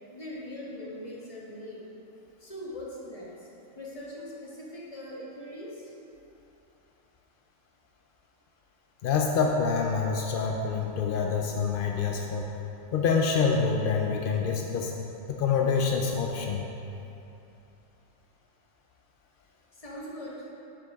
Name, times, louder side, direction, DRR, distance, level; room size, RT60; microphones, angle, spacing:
voice 1, 0.1-1.8 2.4-3.5 3.7-5.9 19.7-20.4, left 1 dB, 25° left, -5 dB, 1.2 m, -41 dB
voice 2, 9.0-12.5 12.9-14.9 15.3-16.7, left 5 dB, 75° left, 1 dB, 0.5 m, -26 dB
7.0 x 6.7 x 3.6 m, 2.8 s
omnidirectional pair, 1.5 m